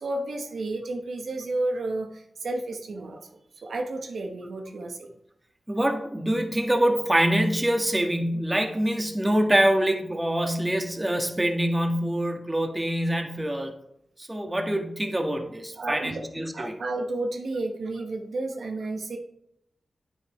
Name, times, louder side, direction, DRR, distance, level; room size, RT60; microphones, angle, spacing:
voice 1, 0.0-3.3 3.6-5.1 15.8-16.2 16.5-19.2, right 2 dB, 80° right, 3 dB, 1.0 m, -31 dB
voice 2, 5.7-13.7 14.2-16.7, right 1 dB, 20° right, 4 dB, 1.5 m, -25 dB
9.1 x 8.9 x 3.1 m, 0.76 s
cardioid pair, 45°, 0 cm